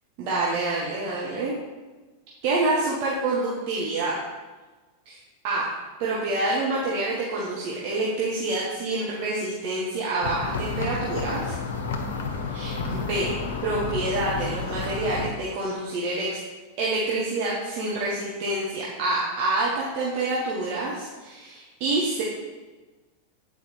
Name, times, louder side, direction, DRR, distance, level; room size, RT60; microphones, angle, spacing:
voice 1, 0.2-1.6 2.4-4.2 5.0-5.2 5.4-5.7 6.0-11.5 12.5-13.3 13.6-16.4 16.8-22.2, right 2 dB, 45° right, -5 dB, 1.3 m, -27 dB
sound 1, 10.2-15.3, left 4 dB, 55° left, 0.8 m, -31 dB
8.8 x 4.6 x 4.3 m, 1.3 s
figure-of-eight pair, 90°, 0 cm